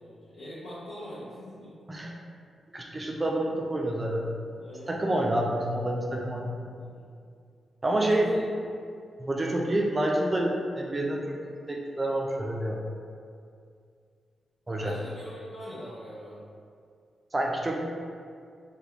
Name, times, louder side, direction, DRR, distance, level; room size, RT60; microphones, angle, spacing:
voice 1, 0.0-1.7 4.6-5.0 6.6-7.0 7.8-8.4 14.7-16.4, equal, 65° left, -10 dB, 0.6 m, -43 dB
voice 2, 2.7-4.3 4.9-6.6 7.8-8.3 9.2-11.4 11.7-12.8 14.7-15.0 17.3-17.8, right 1 dB, 25° right, -1 dB, 0.3 m, -28 dB
3.3 x 2.2 x 2.8 m, 2.3 s
cardioid pair, 95°, 0 cm